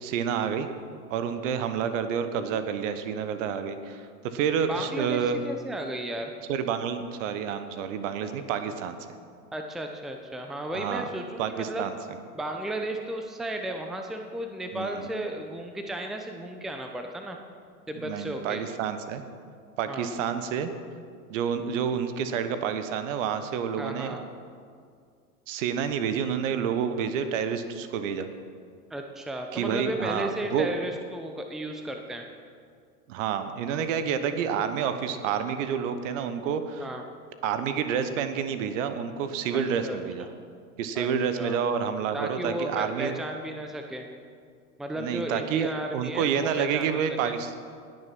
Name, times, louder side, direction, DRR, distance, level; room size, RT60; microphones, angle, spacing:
voice 1, 0.0-0.7 1.1-5.4 6.5-9.0 10.7-11.1 11.4-11.9 14.7-15.1 18.0-19.2 19.8-20.7 21.3-24.2 25.5-28.3 29.5-30.7 33.1-36.9 37.4-40.3 40.8-43.1 44.9-47.5, right 7 dB, 50° right, 10 dB, 1.2 m, -29 dB
voice 2, 4.6-6.3 9.5-11.9 12.3-17.4 17.9-18.6 19.9-20.1 23.8-24.2 28.9-32.2 36.8-37.0 39.5-40.3 40.9-41.1 41.3-41.6 42.1-44.1 44.8-47.3, right 1 dB, ahead, 4 dB, 0.7 m, -34 dB
19.5 x 6.6 x 6.0 m, 2.2 s
hypercardioid pair, 95°, 47 cm